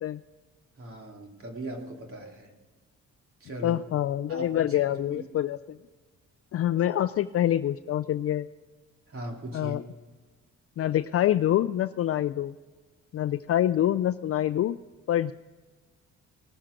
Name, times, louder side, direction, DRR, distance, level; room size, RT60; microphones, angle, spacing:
voice 1, 0.8-2.5 3.4-3.8 4.3-5.2 9.1-9.8, right 1 dB, 45° right, 1 dB, 2.8 m, -39 dB
voice 2, 3.6-5.8 6.5-8.5 9.5-9.8 10.8-12.5 13.1-14.8 15.1-15.3, left 12 dB, 50° left, 13 dB, 0.4 m, -26 dB
19.0 x 7.4 x 5.1 m, 1.3 s
cardioid pair, 90°, 30 cm